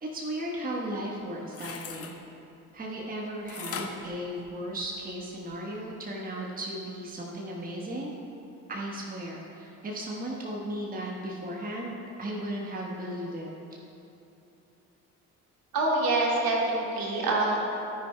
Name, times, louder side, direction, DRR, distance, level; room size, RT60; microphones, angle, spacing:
voice 1, 0.0-2.2 2.7-8.1 8.7-13.5, right 1 dB, 20° right, -2 dB, 1.3 m, -35 dB
sound 1, 1.2-2.1 3.5-5.0 5.5-5.6, left 6 dB, 30° left, 0.8 m, -40 dB
voice 2, 15.7-17.6, right 2 dB, 50° right, -3 dB, 1.9 m, -25 dB
13.0 x 9.7 x 2.3 m, 2.9 s
figure-of-eight pair, 50°, 44 cm